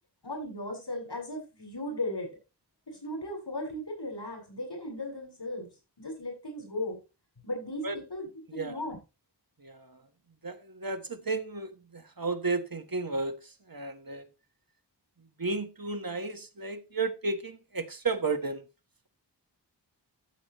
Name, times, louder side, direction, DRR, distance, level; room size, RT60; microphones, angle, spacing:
voice 1, 0.2-2.3 2.9-5.7 6.0-7.0 7.4-9.0, left 1 dB, 80° left, 7.6 m, -36 dB
voice 2, 9.6-10.0 10.4-14.2 15.4-18.7, right 3 dB, 55° right, 1.5 m, -33 dB
14.0 x 8.3 x 3.1 m
wide cardioid pair, 50°, 41 cm